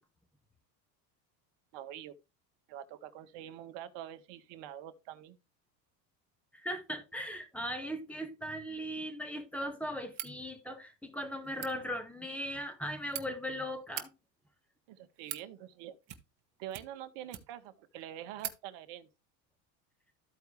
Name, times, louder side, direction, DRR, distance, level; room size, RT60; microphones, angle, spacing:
voice 1, 1.7-2.1 2.7-5.4 14.9-16.0 16.6-19.1, right 11 dB, 60° right, 1.3 m, -45 dB
voice 2, 6.6-14.1, equal, 5° left, 1.9 m, -38 dB
sound 1, 10.1-10.4 11.4-11.7 12.7-13.2 13.8-14.1 14.9-15.5 16.0-16.4 16.7-17.7 18.0-18.1 18.4-18.6, right 12 dB, 90° right, 1.3 m, -42 dB
13.5 x 4.7 x 3.2 m
supercardioid pair, 95°, 50 cm